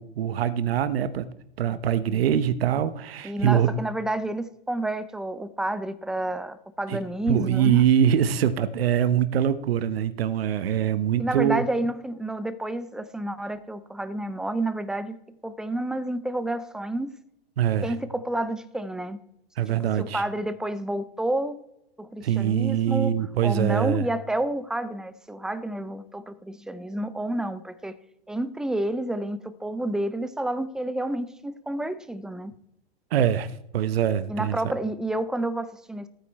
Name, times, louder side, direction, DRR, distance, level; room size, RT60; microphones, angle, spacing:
voice 1, 0.0-3.8 6.9-7.0 7.3-11.6 17.6-17.9 19.6-20.2 22.2-24.1 33.1-34.6, right 9 dB, 75° right, 13 dB, 1.1 m, -23 dB
voice 2, 3.2-7.8 11.2-17.1 17.8-19.2 20.0-21.6 22.0-23.2 23.4-28.0 28.3-32.5 34.3-36.1, right 1 dB, ahead, 14 dB, 0.4 m, -29 dB
15.0 x 9.2 x 4.3 m, 0.83 s
hypercardioid pair, 140°, 30 cm